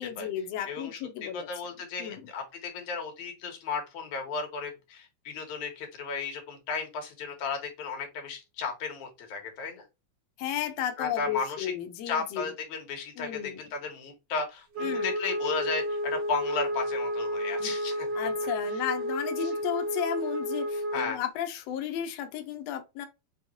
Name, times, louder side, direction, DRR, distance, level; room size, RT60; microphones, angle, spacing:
voice 1, 0.0-1.5 2.0-2.2 10.4-12.4 13.2-13.6 14.8-15.1 17.6-17.7 18.1-23.1, left 10 dB, 70° left, 1.8 m, -33 dB
voice 2, 0.7-9.8 11.0-11.7 12.1-18.1 19.4-19.5 20.9-21.2, left 5 dB, 90° left, 2.9 m, -34 dB
Wind instrument woodwind instrument, 14.7-21.2, equal, 50° right, 1.8 m, -31 dB
6.4 x 3.1 x 2.7 m
omnidirectional pair, 3.3 m